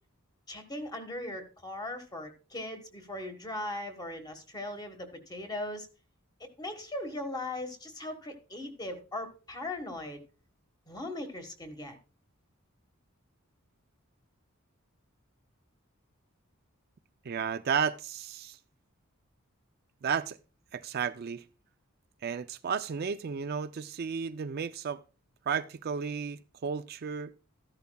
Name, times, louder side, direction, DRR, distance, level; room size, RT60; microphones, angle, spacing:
voice 1, 0.5-5.9 6.4-10.2 10.9-12.0, left 1 dB, 20° left, 1.4 m, -39 dB
voice 2, 17.3-18.6 20.0-20.4 20.7-21.4 22.2-25.0 25.5-27.3, right 6 dB, 45° right, 0.4 m, -33 dB
13.5 x 10.5 x 2.3 m
head